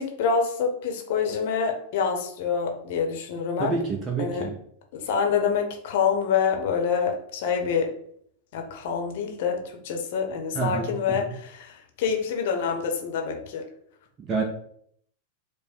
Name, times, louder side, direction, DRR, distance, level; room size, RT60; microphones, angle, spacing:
voice 1, 0.0-3.7 4.2-4.5 4.9-7.9 8.5-13.7, left 6 dB, 50° left, 3 dB, 0.8 m, -26 dB
voice 2, 3.6-4.6 10.5-11.3 14.3-14.4, right 4 dB, 25° right, 1 dB, 0.7 m, -28 dB
5.0 x 2.1 x 4.2 m, 0.65 s
figure-of-eight pair, 90°, 0 cm